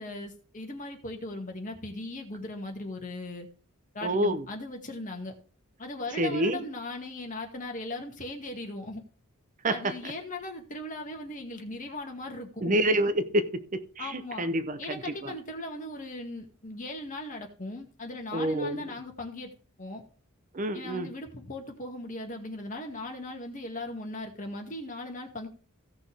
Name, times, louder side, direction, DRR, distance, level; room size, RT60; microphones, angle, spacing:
voice 1, 0.0-3.5 3.9-5.4 5.8-9.0 9.7-12.8 14.0-14.5 14.8-19.5 19.8-20.0 20.7-25.5, left 2 dB, 35° left, 2.1 m, -38 dB
voice 2, 4.0-4.5 6.2-6.6 9.6-10.1 12.6-15.3 18.3-18.9 20.5-21.1, right 1 dB, 35° right, 0.7 m, -28 dB
16.5 x 6.1 x 3.4 m
head